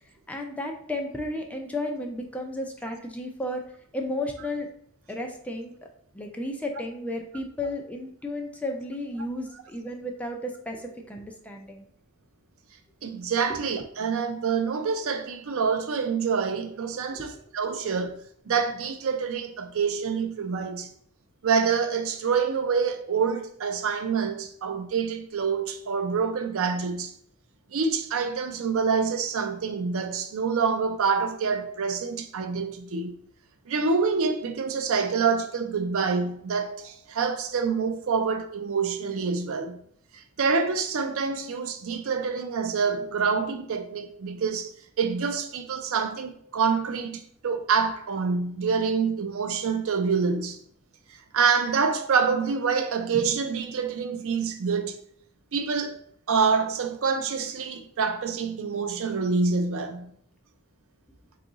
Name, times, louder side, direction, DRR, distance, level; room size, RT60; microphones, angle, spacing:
voice 1, 0.3-3.6 3.9-4.7 5.1-5.7 6.1-11.8 17.1-17.3, left 1 dB, 5° left, 0.4 m, -33 dB
voice 2, 13.0-20.9 21.4-27.1 27.7-33.1 33.7-39.8 40.1-44.7 45.0-50.6 51.1-55.0 55.5-55.9 56.3-60.1, right 5 dB, 65° right, 0.5 m, -26 dB
3.9 x 2.4 x 3.8 m
head